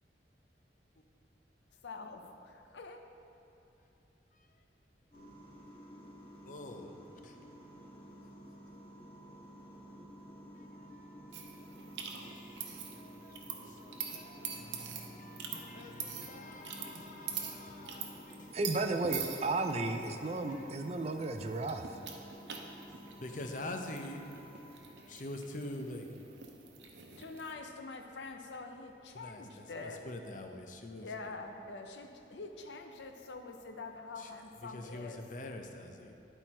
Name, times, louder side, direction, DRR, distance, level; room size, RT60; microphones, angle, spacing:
voice 1, 1.8-3.0 27.2-30.0 31.0-35.2, left 3 dB, 85° left, 4 dB, 0.6 m, -45 dB
sound 1, 5.1-24.8, equal, 30° left, 1.6 m, -52 dB
voice 2, 6.4-7.0 7.2-7.4 10.6-18.7 20.1-21.1 22.6-24.3 24.6-26.5 29.1-31.4 34.2-34.3 34.6-36.1, left 1 dB, 45° left, 4 dB, 0.6 m, -47 dB
sound 2, 11.3-27.5, right 7 dB, 90° right, 0.8 m, -45 dB
voice 3, 18.5-21.9, right 2 dB, 35° right, 6 dB, 0.4 m, -33 dB
11.0 x 4.5 x 4.3 m, 2.7 s
head